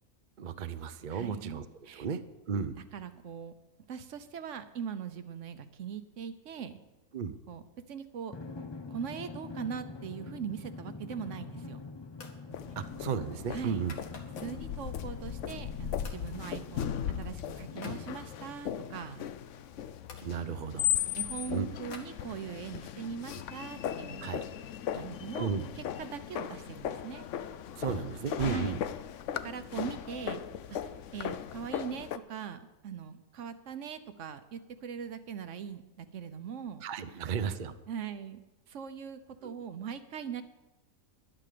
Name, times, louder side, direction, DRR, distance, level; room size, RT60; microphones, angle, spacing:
voice 1, 0.4-2.2 2.5-2.8 7.1-7.4 13.0-14.0 20.2-20.9 21.5-21.7 24.2-24.5 25.4-25.7 27.8-28.8 36.8-37.7 39.4-39.6, right 6 dB, 45° right, 10 dB, 0.7 m, -34 dB
voice 2, 1.1-2.1 2.8-3.5 3.9-6.8 7.5-7.6 7.9-8.4 8.9-11.8 13.5-13.9 14.4-16.9 17.2-19.2 21.2-24.4 24.9-27.3 28.4-28.8 29.4-30.4 30.7-30.8 31.1-36.8 37.1-37.2 37.9-38.4 38.7-40.4, right 7 dB, 65° right, 11 dB, 1.2 m, -41 dB
Drum, 8.3-19.4, left 3 dB, 30° left, 0.5 m, -46 dB
sound 1, 11.2-11.7 12.1-12.5 12.8-14.6 15.1-15.7 16.0-16.3 16.6-18.0 18.8-20.3 20.9-22.7, left 4 dB, 85° left, 2.1 m, -53 dB
sound 2, 12.5-32.2, left 10 dB, 65° left, 0.9 m, -37 dB
11.5 x 11.0 x 6.8 m, 1.1 s
omnidirectional pair, 1.5 m